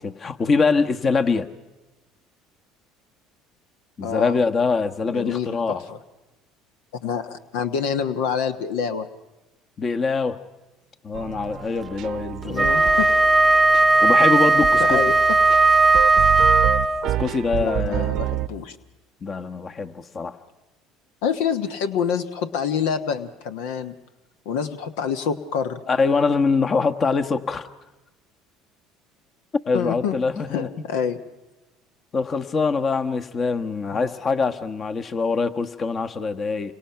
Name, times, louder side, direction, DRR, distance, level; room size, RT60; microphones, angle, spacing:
voice 1, 0.0-1.5 4.0-5.8 9.8-10.4 11.0-12.7 14.0-15.0 17.0-18.1 19.2-20.4 25.9-27.7 29.7-30.9 32.1-36.7, left 4 dB, 35° left, 8 dB, 1.3 m, -23 dB
voice 2, 4.0-4.4 5.1-6.0 7.0-9.1 12.4-13.1 14.8-15.1 17.5-18.8 21.2-23.9 24.4-25.8 29.7-30.2 30.5-31.2 33.9-34.1, left 7 dB, 80° left, 10 dB, 1.2 m, -27 dB
sound 1, 11.1-18.5, right 13 dB, 60° right, 0.7 m, -29 dB
Wind instrument woodwind instrument, 12.5-17.1, right 3 dB, 10° right, 0.9 m, -17 dB
29.0 x 25.0 x 5.8 m, 1.1 s
supercardioid pair, 85°, 0 cm